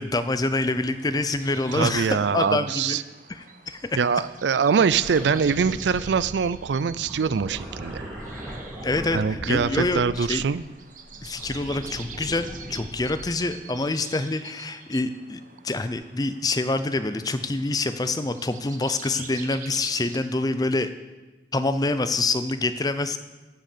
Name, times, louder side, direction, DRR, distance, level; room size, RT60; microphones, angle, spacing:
voice 1, 0.0-3.0 3.3-4.0 8.8-10.4 11.2-20.9 21.5-23.2, left 2 dB, 20° left, 11 dB, 0.5 m, -26 dB
sound 1, 0.8-20.2, right 6 dB, 45° right, 0.9 m, -46 dB
voice 2, 1.7-3.0 4.0-8.1 9.1-10.6, right 6 dB, 75° right, 17 dB, 0.4 m, -23 dB
sound 2, 4.8-10.6 11.0-13.5 15.9-16.0, equal, ahead, 3.1 m, -39 dB
9.6 x 6.4 x 6.7 m, 1.2 s
head